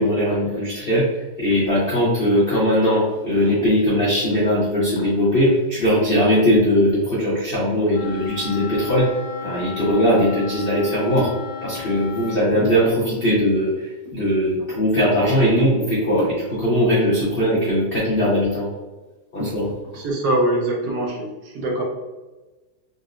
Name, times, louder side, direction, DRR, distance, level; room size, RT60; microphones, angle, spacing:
voice 1, 0.0-9.1 9.4-11.3 11.6-18.7 19.3-19.7, equal, 65° left, -7 dB, 0.5 m, -20 dB
Wind instrument woodwind instrument, 7.9-12.5, left 8 dB, 90° left, 1.4 m, -35 dB
voice 2, 19.9-21.8, right 1 dB, 90° right, -1 dB, 1.4 m, -23 dB
3.9 x 2.0 x 2.4 m, 1.2 s
omnidirectional pair, 1.9 m